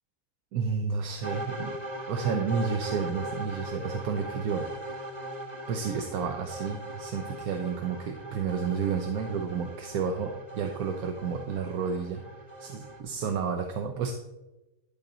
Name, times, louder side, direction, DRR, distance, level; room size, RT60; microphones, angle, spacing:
voice 1, 0.5-1.7 2.1-4.7 5.7-12.2 12.6-14.1, right 6 dB, 70° right, 4 dB, 1.2 m, -31 dB
sound 1, 1.2-13.0, right 1 dB, 30° right, 1.2 m, -39 dB
12.0 x 5.8 x 3.9 m, 1.0 s
omnidirectional pair, 1.6 m